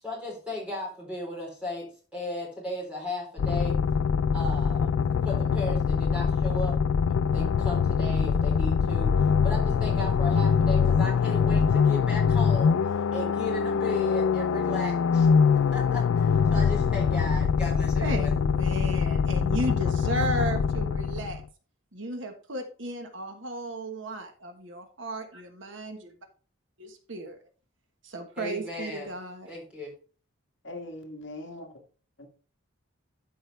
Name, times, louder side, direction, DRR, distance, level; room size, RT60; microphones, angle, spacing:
voice 1, 0.0-3.8 4.3-4.9 5.2-6.8 7.3-9.1 9.4-15.3 15.7-18.3 28.4-29.1 29.5-29.9, left 1 dB, 5° right, 3.6 m, -36 dB
sound 1, 3.4-21.4, left 6 dB, 80° left, 0.4 m, -24 dB
voice 2, 18.0-21.4 21.9-26.1 26.8-27.4 28.0-29.5, right 1 dB, 60° right, 1.4 m, -34 dB
voice 3, 30.6-31.7 32.2-32.3, left 2 dB, 55° left, 1.5 m, -41 dB
12.5 x 5.1 x 3.4 m
head